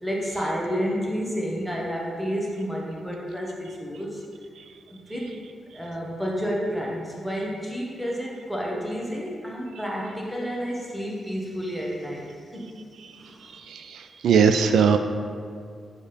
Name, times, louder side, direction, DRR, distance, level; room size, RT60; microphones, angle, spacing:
voice 1, 0.0-4.2 4.9-5.4 5.7-12.7 13.0-13.6, equal, ahead, -3 dB, 1.0 m, -30 dB
voice 2, 13.7-15.0, right 6 dB, 85° right, 7 dB, 0.3 m, -20 dB
7.1 x 4.1 x 3.4 m, 2.2 s
wide cardioid pair, 145°, 0 cm